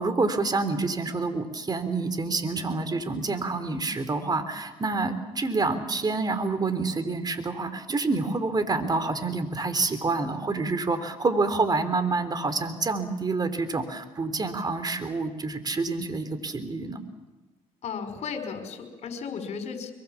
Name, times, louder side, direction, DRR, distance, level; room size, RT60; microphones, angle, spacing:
voice 1, 0.0-17.0, right 3 dB, 30° right, 10 dB, 3.5 m, -27 dB
voice 2, 17.8-19.9, left 6 dB, 60° left, 6 dB, 5.3 m, -35 dB
25.0 x 23.5 x 7.3 m, 1.2 s
supercardioid pair, 80°, 13 cm